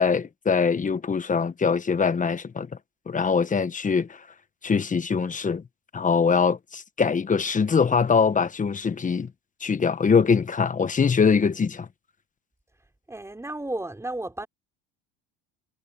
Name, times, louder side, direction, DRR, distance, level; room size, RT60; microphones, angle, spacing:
voice 1, 0.0-2.7 3.1-4.2 4.6-5.6 5.9-9.3 9.6-11.9, left 5 dB, 20° left, 1.3 m, -23 dB
voice 2, 13.1-14.5, right 2 dB, 10° right, 5.3 m, -33 dB
supercardioid pair, 105°, 34 cm